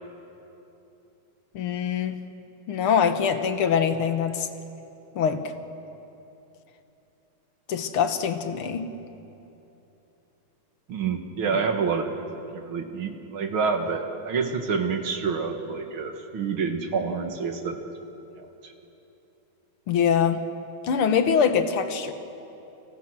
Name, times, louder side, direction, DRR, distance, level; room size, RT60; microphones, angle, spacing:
voice 1, 1.5-2.2 2.7-4.5 5.2-5.5 7.7-8.9 11.5-11.6 19.9-20.4 20.8-22.1, left 7 dB, 85° left, 9 dB, 2.1 m, -23 dB
voice 2, 10.9-12.2 12.5-17.8 18.4-18.7, right 5 dB, 70° right, 5 dB, 2.4 m, -28 dB
29.5 x 25.0 x 6.2 m, 3.0 s
omnidirectional pair, 2.4 m